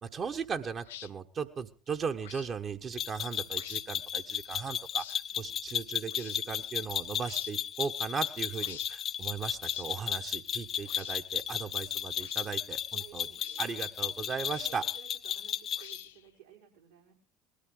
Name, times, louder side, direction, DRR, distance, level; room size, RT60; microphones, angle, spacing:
voice 1, 0.0-5.0 5.4-13.3 13.6-14.8, right 6 dB, 40° right, 6 dB, 1.3 m, -37 dB
sound 1, 0.8-1.1 2.2-2.5 3.5-3.8 4.9-5.2 6.1-6.4 7.2-7.6 8.6-8.9 9.6-9.9 10.8-11.2 12.2-12.5 13.4-13.6 14.5-14.9 15.8-16.3, left 11 dB, 75° left, 0.7 m, -48 dB
sound 2, 3.0-16.0, left 9 dB, 45° left, 0.8 m, -34 dB
voice 2, 5.3-5.6 9.9-10.1 11.6-11.7 12.1-12.5 13.0-13.9 14.5-17.2, right 9 dB, 80° right, -2 dB, 4.9 m, -57 dB
20.0 x 13.5 x 3.9 m, 0.37 s
figure-of-eight pair, 65°, 0 cm